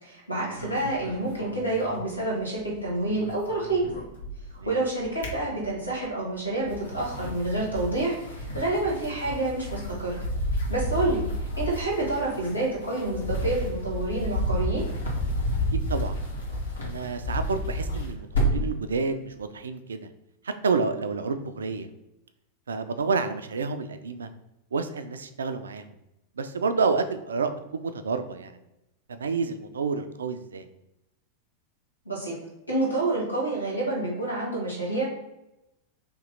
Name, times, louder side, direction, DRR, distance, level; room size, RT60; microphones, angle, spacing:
voice 1, 0.0-3.8 4.6-10.2 10.7-11.2 11.6-14.8 32.0-32.3 32.7-35.0, right 2 dB, 85° left, -3 dB, 1.3 m, -28 dB
sound 1, 0.6-2.7 3.0-4.6 5.0-6.0 6.5-18.8, equal, 70° left, 1.0 m, -31 dB
voice 2, 16.8-20.1 20.4-21.9 22.7-24.3 24.7-25.8 26.4-28.6 29.1-30.7, right 4 dB, 70° right, 9 dB, 0.3 m, -29 dB
3.0 x 2.7 x 3.7 m, 0.90 s
figure-of-eight pair, 90°, 0 cm